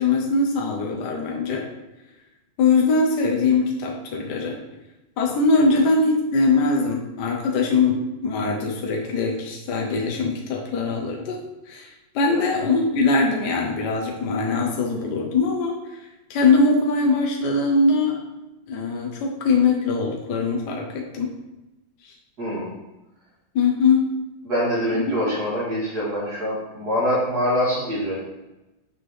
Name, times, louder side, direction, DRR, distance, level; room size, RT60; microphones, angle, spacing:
voice 1, 0.0-1.6 2.6-4.6 5.2-11.4 11.6-18.2 18.7-21.3 22.0-22.1 23.5-24.1 24.9-25.2, left 3 dB, 60° left, 0 dB, 1.3 m, -22 dB
voice 2, 22.4-22.7 24.4-28.2, equal, 50° right, -8 dB, 2.9 m, -24 dB
6.9 x 5.8 x 3.2 m, 1.0 s
omnidirectional pair, 2.2 m